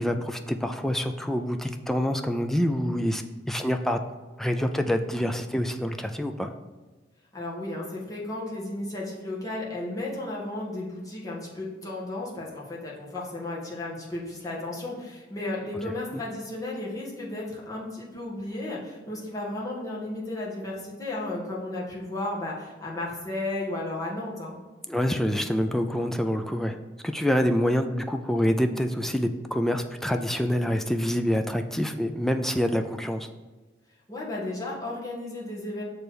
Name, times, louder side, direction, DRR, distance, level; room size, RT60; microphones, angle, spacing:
voice 1, 0.0-3.2 3.5-4.0 4.4-6.5 16.1-16.2 24.9-26.8 27.0-33.3, equal, ahead, 5 dB, 0.3 m, -26 dB
voice 2, 7.3-24.6 34.1-35.8, left 2 dB, 20° left, -6 dB, 1.6 m, -34 dB
6.9 x 3.3 x 6.1 m, 1.2 s
head